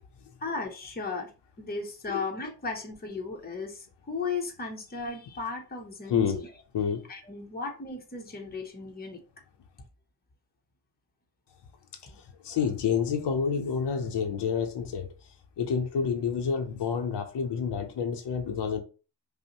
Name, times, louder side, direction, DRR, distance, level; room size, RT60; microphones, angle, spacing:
voice 1, 0.4-1.3 1.6-6.5 7.1-9.2, left 4 dB, 25° left, 0.7 m, -35 dB
voice 2, 12.0-15.1 15.6-18.8, left 6 dB, 85° left, 0.7 m, -29 dB
5.3 x 2.1 x 2.9 m
wide cardioid pair, 160°, 41 cm